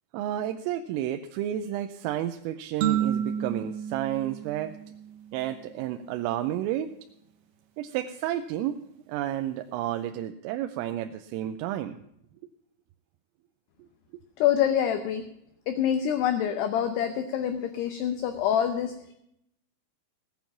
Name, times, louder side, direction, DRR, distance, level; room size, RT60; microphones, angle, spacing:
voice 1, 0.1-4.8 5.3-6.9 7.8-8.8 9.1-12.0, right 12 dB, 85° right, 7 dB, 3.2 m, -31 dB
sound 1, 2.8-5.5, right 9 dB, 65° right, 2.7 m, -30 dB
voice 2, 14.4-15.2 15.7-18.9, left 9 dB, 80° left, 8 dB, 2.4 m, -26 dB
17.0 x 9.3 x 5.8 m, 0.77 s
omnidirectional pair, 5.8 m